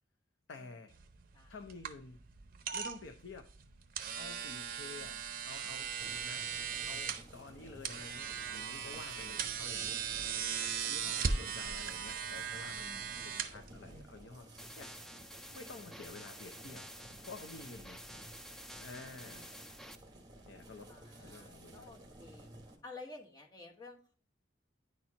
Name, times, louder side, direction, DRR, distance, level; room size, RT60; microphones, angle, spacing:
voice 1, 0.5-0.9 1.5-2.2 2.7-3.5 4.1-6.5 6.8-10.1 10.8-12.9 13.2-14.5 14.8-15.0 15.5-16.9 17.2-18.0 18.8-19.5 20.4-21.0 21.2-22.0, left 3 dB, 80° left, 5 dB, 0.7 m, -50 dB
sound 1, 0.9-14.2, right 6 dB, 50° right, 0.6 m, -39 dB
sound 2, 6.0-22.8, right 1 dB, 20° right, 1.3 m, -55 dB
voice 2, 9.2-9.6 12.9-13.3 19.0-19.3 20.9-22.5 22.8-24.1, left 3 dB, 20° left, 0 dB, 1.2 m, -53 dB
sound 3, 14.6-20.0, equal, ahead, 0.3 m, -50 dB
9.7 x 4.3 x 2.8 m, 0.41 s
head